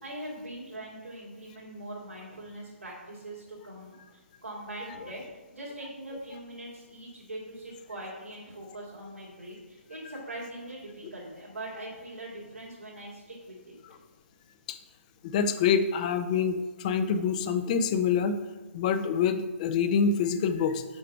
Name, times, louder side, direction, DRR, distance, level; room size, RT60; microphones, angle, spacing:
voice 1, 0.0-13.7, right 1 dB, 80° right, -6 dB, 2.2 m, -42 dB
voice 2, 15.2-18.4 18.7-20.8, left 6 dB, 35° left, 11 dB, 0.5 m, -26 dB
6.3 x 4.9 x 4.7 m, 1.2 s
figure-of-eight pair, 140°, 7 cm